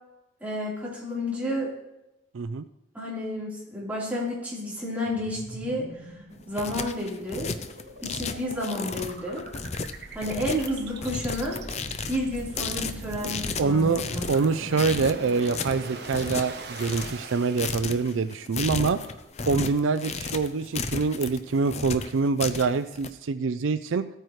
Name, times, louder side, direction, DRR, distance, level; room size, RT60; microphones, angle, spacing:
voice 1, 0.4-1.7 2.9-6.2 6.5-7.5 8.0-9.4 10.1-11.6 12.1-14.2, left 1 dB, 10° right, -8 dB, 3.8 m, -31 dB
voice 2, 2.3-2.7 13.6-19.1 19.5-24.1, right 4 dB, 75° right, 12 dB, 0.4 m, -25 dB
sound 1, 5.1-18.5, right 2 dB, 55° right, 1.0 m, -41 dB
sound 2, 6.3-23.1, left 4 dB, 35° left, 0.5 m, -34 dB
15.5 x 9.1 x 3.2 m, 0.95 s
head